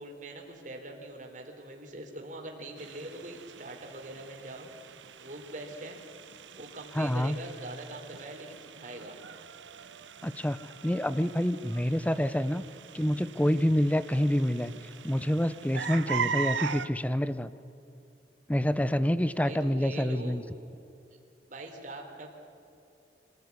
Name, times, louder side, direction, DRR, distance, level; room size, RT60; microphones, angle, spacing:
voice 1, 0.0-4.7 5.2-6.0 6.5-9.2 19.4-20.4 21.5-22.3, right 2 dB, 45° right, 1 dB, 3.7 m, -43 dB
sound 1, 2.8-16.9, right 6 dB, 85° right, 0.9 m, -40 dB
voice 2, 6.9-7.4 10.2-10.6 10.8-12.6 12.9-14.7 15.0-17.5 18.5-20.4, equal, 10° left, 14 dB, 0.7 m, -27 dB
26.0 x 16.0 x 9.7 m, 2.7 s
head